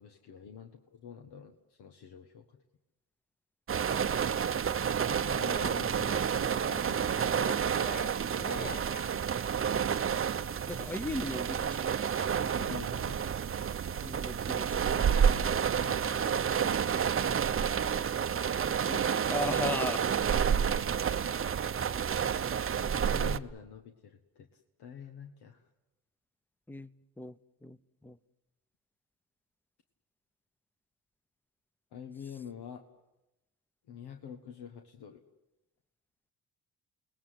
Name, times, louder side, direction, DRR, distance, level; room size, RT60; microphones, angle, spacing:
voice 1, 0.0-2.4 4.9-7.7 10.9-11.1 12.5-13.2 15.7-17.1 22.9-25.6 31.9-32.8 33.9-35.2, left 7 dB, 80° left, 5 dB, 1.7 m, -47 dB
sound 1, 3.7-23.4, right 7 dB, 35° right, 0.8 m, -30 dB
sound 2, 5.0-9.1, left 2 dB, 25° left, 1.1 m, -44 dB
voice 2, 10.7-12.0 12.4-12.7 14.0-15.0 18.9-19.0 19.3-20.0 26.7-26.9 27.2-27.4 27.6-28.2, left 2 dB, 5° left, 15 dB, 0.8 m, -37 dB
29.5 x 19.5 x 7.7 m, 0.95 s
cardioid pair, 90°, 39 cm